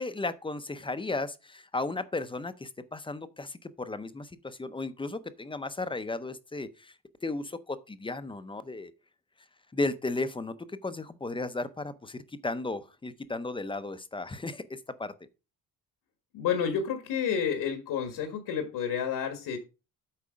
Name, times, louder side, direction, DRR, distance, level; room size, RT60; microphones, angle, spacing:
voice 1, 0.0-6.9 7.2-8.9 9.7-15.1, left 2 dB, 15° left, 0.5 m, -35 dB
voice 2, 16.3-19.6, left 7 dB, 75° left, 1.6 m, -30 dB
8.5 x 4.7 x 5.1 m
cardioid pair, 140°, 39 cm